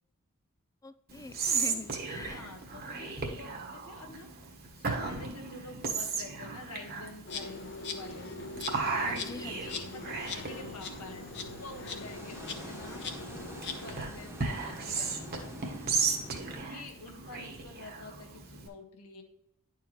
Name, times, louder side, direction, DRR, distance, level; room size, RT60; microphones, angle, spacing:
voice 1, 0.8-2.4 9.0-9.6, left 3 dB, 15° left, 13 dB, 0.3 m, -44 dB
Whispering, 1.1-18.7, right 4 dB, 45° right, 1.3 m, -36 dB
voice 2, 1.6-2.0 2.3-8.3 9.5-15.6 16.6-19.2, left 2 dB, 85° left, 3 dB, 1.5 m, -48 dB
Insect, 7.3-13.9, left 4 dB, 50° left, 1.0 m, -41 dB
sound 1, 8.4-16.6, equal, 10° right, 1.1 m, -48 dB
10.5 x 4.6 x 3.0 m, 0.84 s
head